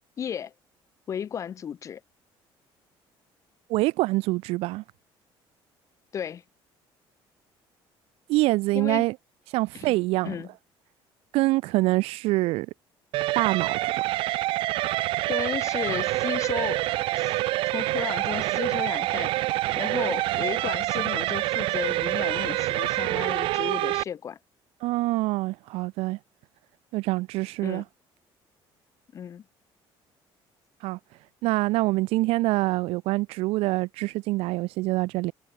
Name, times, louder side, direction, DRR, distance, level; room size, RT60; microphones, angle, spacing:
voice 1, 0.2-0.5 1.1-2.0 6.1-6.4 8.7-9.0 9.7-10.0 10.2-10.5 15.3-16.8 17.1-17.4 17.7-19.3 19.8-24.4 27.6-27.8 29.1-29.4, left 8 dB, 30° left, 4.4 m, -34 dB
voice 2, 3.7-4.8 8.3-9.1 9.5-10.3 11.3-12.7 13.3-14.0 24.8-26.2 26.9-27.8 30.8-31.0 31.4-35.3, right 20 dB, 85° right, 1.0 m, -25 dB
sound 1, 13.1-24.0, right 18 dB, 65° right, 0.5 m, -26 dB
cardioid pair, 175°, 10 cm